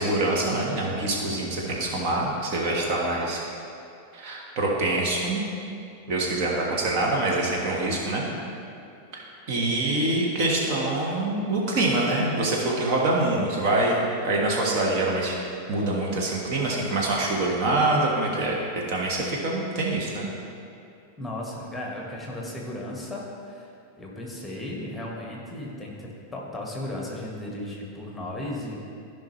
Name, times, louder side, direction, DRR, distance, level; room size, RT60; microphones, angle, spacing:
voice 1, 0.0-3.4 4.1-5.4 6.1-8.3 9.1-14.0 14.2-15.4 15.7-18.6 18.9-20.3, right 2 dB, 45° right, -2 dB, 1.5 m, -25 dB
voice 2, 21.2-23.7 24.0-28.8, left 1 dB, 5° left, -3 dB, 1.6 m, -35 dB
14.5 x 5.3 x 3.2 m, 2.7 s
figure-of-eight pair, 90°, 0 cm